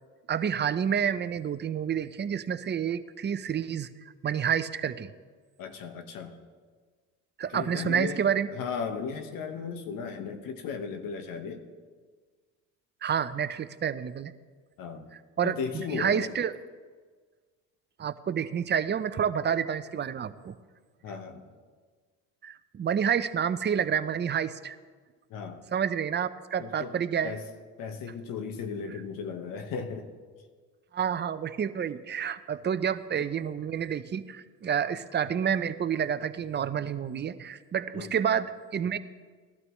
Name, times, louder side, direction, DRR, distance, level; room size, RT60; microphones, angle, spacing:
voice 1, 0.3-3.9 4.2-5.1 7.4-8.5 13.0-14.3 15.4-16.5 18.0-20.5 22.4-24.8 25.7-27.3 30.9-39.0, right 8 dB, 30° right, 13 dB, 0.6 m, -29 dB
voice 2, 5.6-6.4 7.5-8.2 8.5-11.6 14.8-15.1 15.4-16.3 21.0-21.4 25.3-25.6 26.6-26.9 27.2-27.5 27.8-30.1 37.9-38.2, left 6 dB, 60° left, 6 dB, 1.4 m, -36 dB
18.5 x 12.0 x 3.2 m, 1.5 s
supercardioid pair, 75°, 37 cm